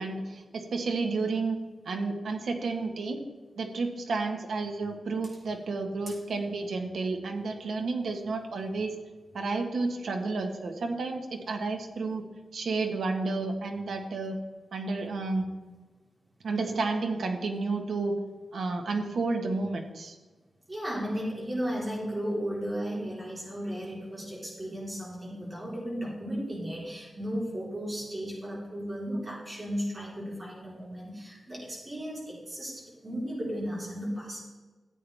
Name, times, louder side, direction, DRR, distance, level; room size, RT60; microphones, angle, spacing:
voice 1, 0.0-1.6 1.8-3.2 3.6-9.0 9.3-12.2 12.5-14.4 14.7-15.4 16.4-18.2 18.5-20.2, right 3 dB, 90° right, 4 dB, 1.5 m, -31 dB
voice 2, 20.7-34.4, equal, 25° right, -5 dB, 4.0 m, -35 dB
14.0 x 8.7 x 3.5 m, 1.3 s
wide cardioid pair, 170°, 0 cm